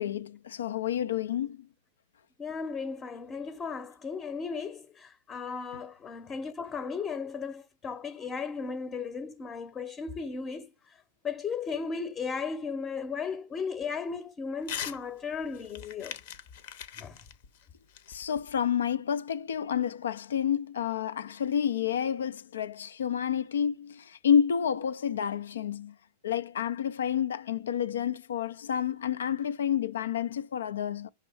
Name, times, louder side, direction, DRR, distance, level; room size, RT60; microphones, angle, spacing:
voice 1, 0.0-1.6 18.1-25.9 26.2-31.1, left 8 dB, 80° left, 0.4 m, -29 dB
voice 2, 2.4-10.7 11.2-16.2 17.0-17.2, left 5 dB, 25° left, 0.8 m, -36 dB
Crumpling crinkling / Tearing, 14.6-15.0 15.3-18.7, left 9 dB, 65° left, 0.9 m, -41 dB
5.4 x 3.5 x 5.3 m
hypercardioid pair, 110°, 0 cm